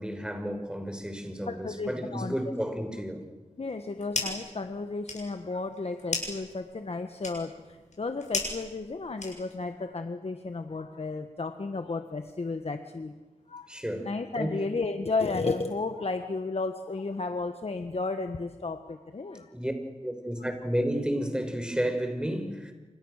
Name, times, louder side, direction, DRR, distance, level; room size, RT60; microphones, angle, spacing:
voice 1, 0.0-3.2 13.7-14.1 14.4-14.5 19.5-19.7 20.0-22.7, equal, 5° right, 6 dB, 5.5 m, -31 dB
voice 2, 1.5-2.3 3.6-13.1 13.5-13.7 14.0-19.5, left 3 dB, 60° left, 7 dB, 1.5 m, -33 dB
sound 1, 3.7-4.5 4.8-9.7, left 3 dB, 85° left, 7.1 m, -36 dB
28.5 x 27.5 x 6.6 m, 1.2 s
cardioid pair, 50°, 12 cm